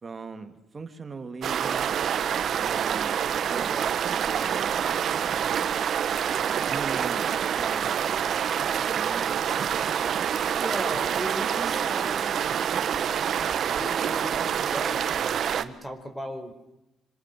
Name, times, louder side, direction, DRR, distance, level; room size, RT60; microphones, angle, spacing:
voice 1, 0.0-1.9 2.6-4.7 6.6-7.3 7.6-8.4 8.9-9.3, right 4 dB, 35° right, 8 dB, 3.3 m, -39 dB
sound 1, 1.4-15.6, right 8 dB, 60° right, 1.7 m, -27 dB
sound 2, 8.0-13.4, left 4 dB, 55° left, 5.4 m, -49 dB
voice 2, 10.5-12.4 13.7-15.1 15.6-16.5, equal, 5° left, 7 dB, 5.0 m, -37 dB
27.0 x 26.5 x 8.0 m, 0.88 s
cardioid pair, 90°, 0 cm